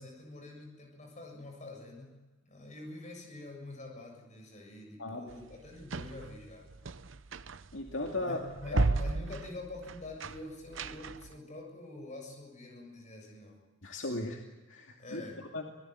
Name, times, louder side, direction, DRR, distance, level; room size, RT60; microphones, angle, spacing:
voice 1, 0.0-2.2 2.5-6.7 6.9-7.1 8.2-13.6 15.0-15.4, left 2 dB, 35° left, 2 dB, 7.3 m, -46 dB
sound 1, 5.3-11.4, right 3 dB, 65° right, 0.8 m, -35 dB
voice 2, 7.7-8.4 8.7-8.9 13.8-14.4 14.7-15.7, left 2 dB, 65° left, 2 dB, 2.4 m, -36 dB
26.5 x 18.0 x 9.4 m, 1.2 s
head